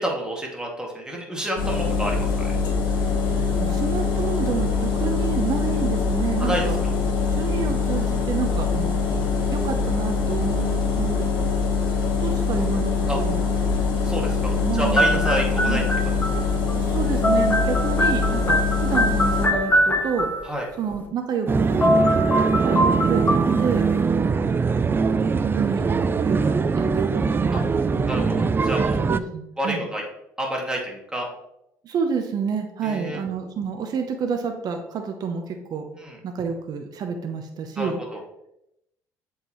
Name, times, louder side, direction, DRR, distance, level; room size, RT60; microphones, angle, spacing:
voice 1, 0.0-2.6 6.4-6.7 13.1-13.2 14.0-16.2 20.4-20.7 27.5-27.6 28.1-29.0 29.6-30.0 30.4-31.3 32.8-33.2 35.9-36.2 37.8-38.2, equal, 10° right, -1 dB, 2.2 m, -29 dB
sound 1, 1.6-19.5, left 5 dB, 65° left, 1.7 m, -23 dB
voice 2, 3.3-6.8 7.3-9.0 9.5-11.2 12.2-13.4 14.6-15.3 15.6-15.9 16.7-20.3 20.8-22.0 22.3-23.9 24.8-28.2 28.8-29.8 31.8-35.9 36.2-38.0, right 6 dB, 55° right, 4 dB, 0.8 m, -29 dB
sound 2, 14.9-16.7 17.0-20.6 21.5-21.6 21.8-23.9, equal, 25° left, 1.5 m, -23 dB
sound 3, 21.5-29.2, right 5 dB, 25° right, 0.4 m, -22 dB
7.5 x 4.7 x 3.1 m, 0.82 s
hypercardioid pair, 65°, 8 cm